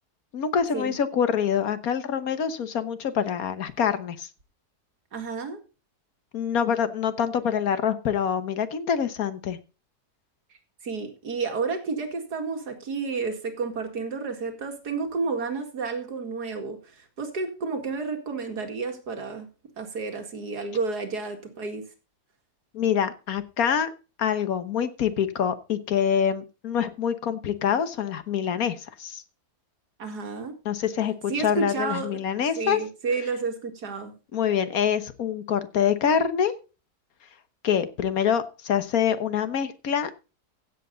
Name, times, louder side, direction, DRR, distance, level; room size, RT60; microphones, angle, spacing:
voice 1, 0.3-4.3 6.3-9.6 22.7-23.9 24.2-29.2 30.6-32.8 34.3-36.5 37.6-40.2, left 8 dB, 65° left, 11 dB, 1.6 m, -25 dB
voice 2, 5.1-5.6 10.8-19.5 19.8-21.8 30.0-30.6 31.3-32.2 32.6-34.1, right 4 dB, 90° right, 5 dB, 2.6 m, -31 dB
15.5 x 8.1 x 3.9 m, 0.32 s
omnidirectional pair, 1.7 m